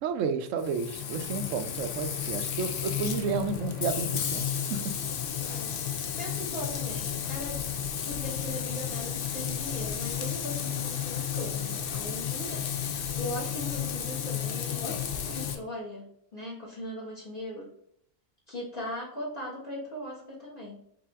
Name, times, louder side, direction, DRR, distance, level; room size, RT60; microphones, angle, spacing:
voice 1, 0.0-4.8, right 5 dB, 70° right, 8 dB, 0.9 m, -31 dB
Frying (food), 0.6-15.6, left 8 dB, 60° left, 0.6 m, -32 dB
voice 2, 5.3-5.7 6.2-7.6 8.0-17.7 18.5-20.8, left 1 dB, 40° left, -5 dB, 1.4 m, -39 dB
4.9 x 2.8 x 3.5 m, 0.72 s
omnidirectional pair, 1.4 m